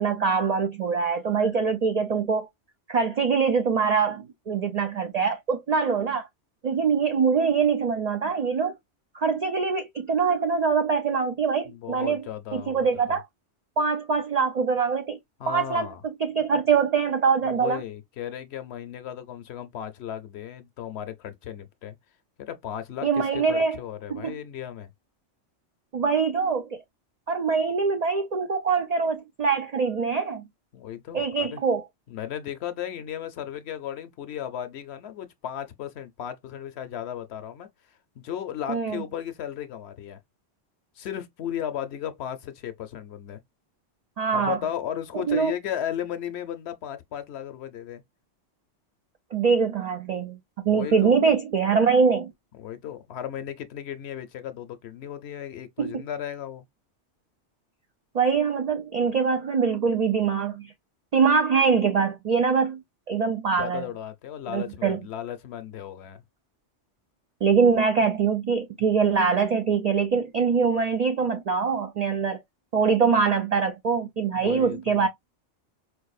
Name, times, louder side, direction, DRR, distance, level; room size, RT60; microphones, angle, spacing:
voice 1, 0.0-2.5 2.9-6.3 6.6-8.7 9.1-12.2 12.5-13.2 13.8-15.2 15.5-17.8 23.0-23.8 24.1-24.4 25.9-26.8 27.3-30.4 31.1-31.8 38.7-39.0 44.2-44.6 45.3-45.5 49.3-52.3 55.8-55.9 58.1-60.7 61.1-62.8 63.1-63.9 64.5-65.0 67.4-72.4 72.7-75.1, right 5 dB, 75° right, 0.3 m, -23 dB
voice 2, 11.7-13.2 15.4-16.0 17.4-22.0 22.4-24.9 30.7-31.6 32.1-37.7 38.2-40.2 41.0-43.4 44.3-48.0 50.7-51.2 52.6-56.6 63.4-66.2 73.1-73.2 74.3-75.1, left 10 dB, 70° left, 0.8 m, -35 dB
4.6 x 2.6 x 2.3 m
omnidirectional pair, 1.2 m